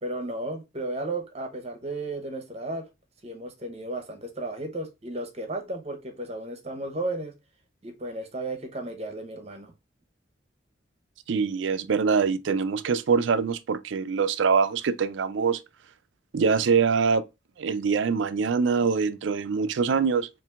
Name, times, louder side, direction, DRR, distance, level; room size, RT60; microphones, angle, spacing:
voice 1, 0.0-2.9 3.2-7.3 7.8-9.7, right 2 dB, 35° right, 0.8 m, -34 dB
voice 2, 11.3-15.6 16.3-17.2 17.6-20.3, right 5 dB, 70° right, 0.4 m, -24 dB
5.6 x 2.6 x 2.4 m
head